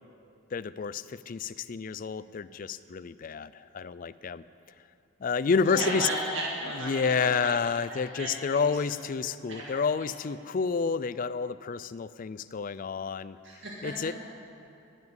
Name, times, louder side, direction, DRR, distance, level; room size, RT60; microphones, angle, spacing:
voice 1, 0.5-4.4 5.2-6.1 6.8-13.4 13.8-14.1, left 5 dB, 40° left, 16 dB, 0.3 m, -29 dB
voice 2, 5.7-7.6 7.9-8.7 9.5-10.1 13.4-13.9, right 1 dB, 55° right, -5 dB, 2.2 m, -35 dB
20.0 x 7.2 x 8.0 m, 2.6 s
head